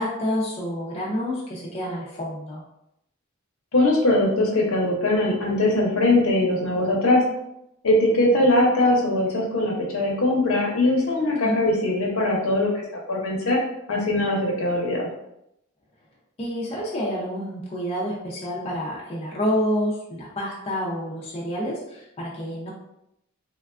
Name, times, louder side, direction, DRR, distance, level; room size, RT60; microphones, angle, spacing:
voice 1, 0.0-2.6 11.4-11.6 16.4-22.7, equal, 25° left, -6 dB, 0.5 m, -28 dB
voice 2, 3.7-7.2 7.8-12.8 13.1-13.6 13.9-15.1, left 1 dB, 70° left, -1 dB, 0.7 m, -21 dB
3.3 x 2.2 x 2.4 m, 0.82 s
head